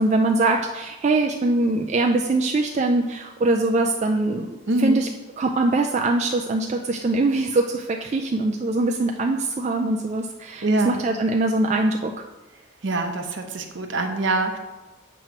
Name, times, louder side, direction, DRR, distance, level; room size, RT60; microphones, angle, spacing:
voice 1, 0.0-5.1 5.4-12.1, right 2 dB, 35° right, 2 dB, 0.3 m, -22 dB
voice 2, 4.7-5.0 10.6-11.0 12.8-14.6, right 2 dB, 65° right, 5 dB, 0.7 m, -24 dB
7.4 x 3.0 x 5.8 m, 1.1 s
head